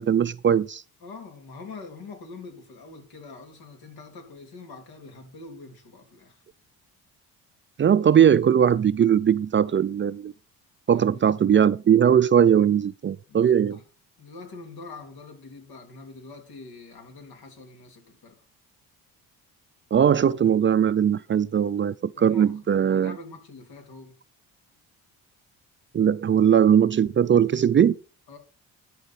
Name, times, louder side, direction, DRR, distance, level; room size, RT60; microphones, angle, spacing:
voice 1, 0.0-0.8 7.8-10.3 10.9-13.8 19.9-23.2 25.9-28.0, right 8 dB, 30° right, 0.5 m, -20 dB
voice 2, 1.0-6.4 10.9-11.3 13.3-13.8 14.2-18.4 22.2-24.1 28.3-28.4, left 3 dB, 75° left, 3.2 m, -44 dB
11.5 x 4.3 x 5.8 m
cardioid pair, 80°, 37 cm